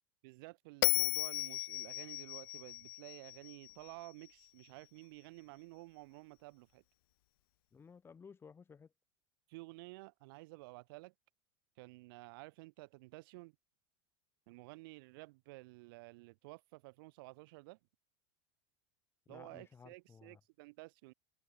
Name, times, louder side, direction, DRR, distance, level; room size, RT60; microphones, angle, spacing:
voice 1, 0.2-6.8 9.5-11.1 11.8-13.5 14.5-17.8 19.3-21.1, right 24 dB, 70° right, 5.7 m, -52 dB
Bell, 0.8-4.1, left 22 dB, 70° left, 0.6 m, -35 dB
voice 2, 7.7-8.9 19.3-20.4, left 6 dB, 20° left, 5.1 m, -56 dB
supercardioid pair, 135°, 12 cm